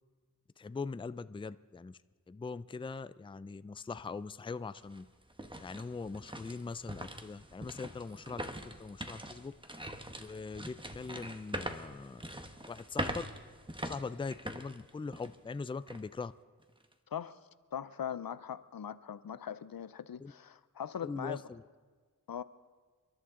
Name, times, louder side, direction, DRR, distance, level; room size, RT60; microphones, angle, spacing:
voice 1, 0.6-2.0 2.3-5.1 5.6-9.5 10.2-12.3 12.7-13.2 13.8-16.3 20.2-20.3 21.0-21.6, left 4 dB, 15° left, 15 dB, 0.4 m, -41 dB
sound 1, 4.0-4.1 4.6-15.5 15.9-16.0 16.6-16.9, right 1 dB, 15° right, 1.1 m, -43 dB
voice 2, 17.7-21.4 22.3-22.4, left 8 dB, 80° left, 15 dB, 0.6 m, -40 dB
30.0 x 11.5 x 3.7 m, 1.5 s
wide cardioid pair, 55°, 35 cm